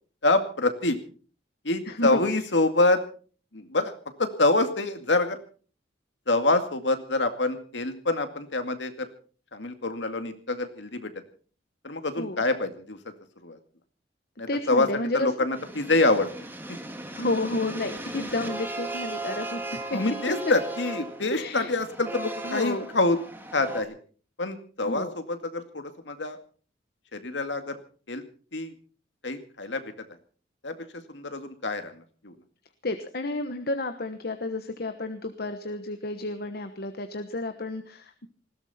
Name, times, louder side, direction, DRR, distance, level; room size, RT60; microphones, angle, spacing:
voice 1, 0.2-1.0 1.6-3.0 3.5-3.9 4.2-5.4 6.3-9.1 9.5-11.1 11.8-13.0 13.4-13.6 14.4-14.9 15.1-16.3 19.9-23.2 23.5-24.0 24.4-26.4 27.1-27.8 28.1-28.2 28.5-28.7 29.2-29.9 30.6-30.8 31.1-32.4, left 2 dB, 75° left, 8 dB, 2.2 m, -26 dB
voice 2, 1.9-2.4 12.2-12.4 14.5-15.3 17.1-20.0 21.3-21.7 22.4-22.9 24.8-25.1 32.8-38.3, left 2 dB, 55° left, 8 dB, 1.2 m, -31 dB
sound 1, 15.5-23.8, right 2 dB, 10° right, 2.2 m, -37 dB
20.0 x 16.0 x 4.3 m, 0.42 s
head